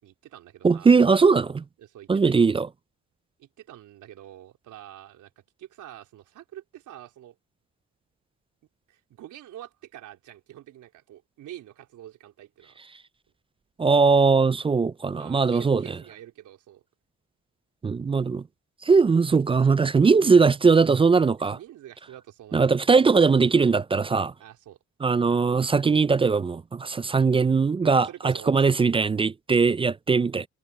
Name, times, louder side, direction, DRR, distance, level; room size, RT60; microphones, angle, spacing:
voice 1, 0.0-0.9 1.8-2.4 3.4-5.3 5.6-7.3 8.9-12.8 15.1-16.8 21.5-22.7 24.4-24.8 27.8-28.5, right 12 dB, 80° right, 4.0 m, -46 dB
voice 2, 0.6-1.6 2.1-2.7 13.8-15.8 17.8-18.4 18.9-21.6 22.5-24.3 25.0-30.5, right 4 dB, 20° right, 0.3 m, -20 dB
cardioid pair, 90°, 30 cm